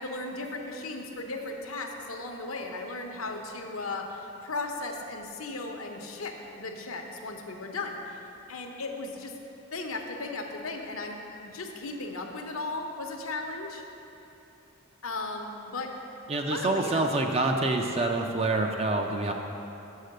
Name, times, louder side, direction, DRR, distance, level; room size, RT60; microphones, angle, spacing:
voice 1, 0.0-8.2 8.5-9.3 9.7-13.8 15.0-15.9 16.5-17.2, left 3 dB, 75° left, 3 dB, 0.9 m, -36 dB
voice 2, 16.3-19.3, right 2 dB, 30° right, 3 dB, 0.4 m, -26 dB
6.6 x 6.5 x 6.5 m, 3.0 s
head